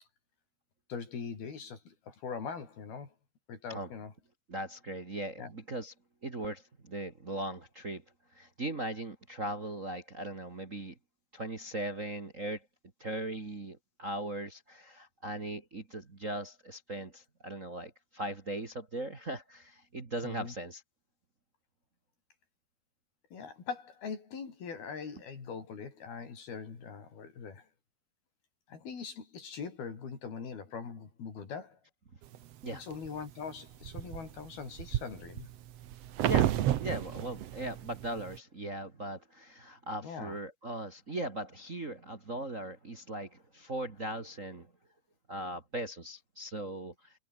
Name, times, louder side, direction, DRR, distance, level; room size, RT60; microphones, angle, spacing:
voice 1, 0.9-3.1 3.5-4.1 5.4-5.5 20.2-20.6 23.3-27.7 28.7-31.8 32.7-35.5 40.0-40.4, left 6 dB, 85° left, 6.9 m, -42 dB
voice 2, 4.5-5.9 6.2-8.0 8.3-11.0 11.3-12.7 13.0-20.8 32.6-32.8 36.2-44.7 45.3-47.1, right 1 dB, 30° right, 1.7 m, -39 dB
sound 1, 32.3-33.1 33.6-38.4, right 12 dB, 65° right, 1.6 m, -32 dB
omnidirectional pair, 4.3 m